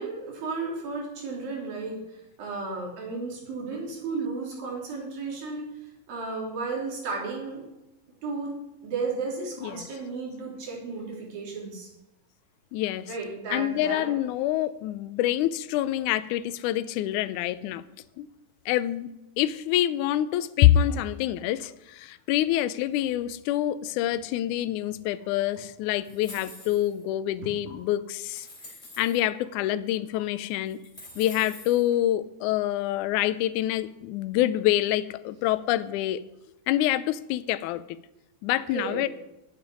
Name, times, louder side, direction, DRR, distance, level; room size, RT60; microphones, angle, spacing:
voice 1, 0.0-7.6 8.2-8.5 8.8-11.9 13.0-14.2 31.0-31.1 38.7-39.1, right 4 dB, 85° right, -2 dB, 5.1 m, -34 dB
voice 2, 12.7-13.1 13.5-17.8 18.2-18.3 18.7-19.1 19.4-28.5 29.0-30.8 31.2-36.2 36.7-37.8 38.4-39.1, left 13 dB, 80° left, 13 dB, 1.9 m, -26 dB
sound 1, 26.0-27.0 27.7-27.8 28.3-29.2 30.1-30.2 30.7-31.9, left 2 dB, 10° left, 3.2 m, -46 dB
9.6 x 8.2 x 9.7 m, 0.92 s
omnidirectional pair, 4.0 m